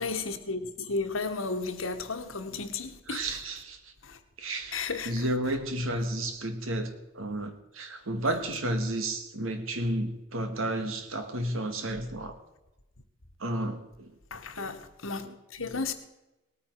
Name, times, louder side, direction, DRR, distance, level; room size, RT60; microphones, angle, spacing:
voice 1, 0.0-3.3 4.0-4.2 4.7-5.2 8.2-8.6 14.3-15.3 15.5-15.9, left 4 dB, 75° left, 1.4 m, -34 dB
voice 2, 3.1-3.8 4.4-4.8 5.1-12.4 13.4-14.1 14.6-14.8 15.2-15.3 15.6-15.8, right 1 dB, 80° right, 1.8 m, -32 dB
19.0 x 9.3 x 4.7 m
head